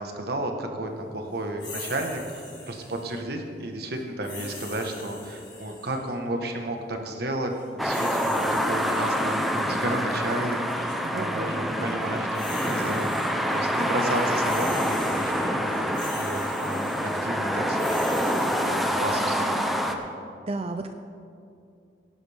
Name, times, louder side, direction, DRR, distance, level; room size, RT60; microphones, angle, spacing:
voice 1, 0.0-13.1 13.5-19.6, right 1 dB, 65° right, 3 dB, 1.5 m, -33 dB
sound 1, 1.6-3.2 4.2-6.1 7.5-10.0 10.7-10.9 12.0-13.6 13.9-19.0, left 3 dB, 30° left, 3.2 m, -42 dB
Cars Passing, 7.8-19.9, equal, ahead, 0.8 m, -26 dB
voice 2, 11.0-11.5 20.5-20.9, right 2 dB, 35° right, 7 dB, 0.5 m, -32 dB
18.0 x 11.0 x 3.6 m, 2.5 s
head